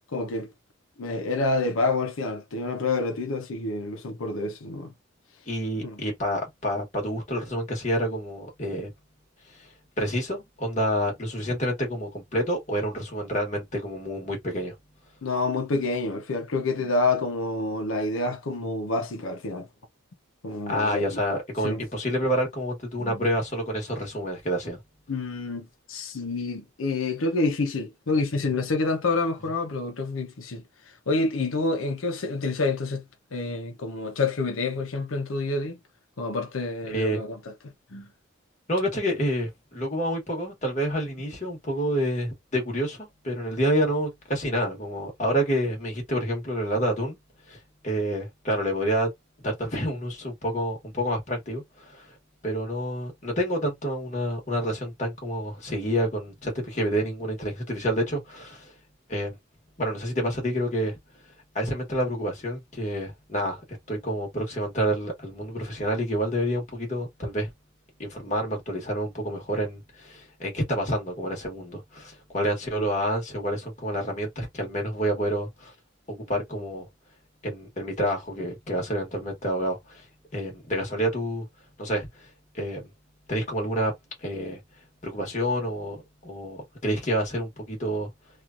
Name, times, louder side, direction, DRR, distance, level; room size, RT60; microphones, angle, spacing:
voice 1, 0.1-0.5 1.0-4.9 5.8-6.0 15.2-19.7 20.4-21.2 21.6-21.8 23.0-23.2 25.1-33.0 33.3-35.8 36.2-37.4 37.9-38.1, left 3 dB, 80° left, 0.7 m, -28 dB
voice 2, 5.5-8.9 9.5-9.7 10.0-14.7 20.7-24.8 36.9-37.2 38.7-47.2 47.5-47.6 47.8-49.1 49.4-52.1 52.4-58.7 59.1-59.4 59.8-61.0 61.5-67.5 68.0-75.7 76.1-76.9 77.4-80.0 80.3-81.5 81.8-82.3 82.5-82.9 83.3-83.9 84.2-84.6 85.0-88.1, equal, 35° left, 1.3 m, -28 dB
3.0 x 2.4 x 2.5 m
head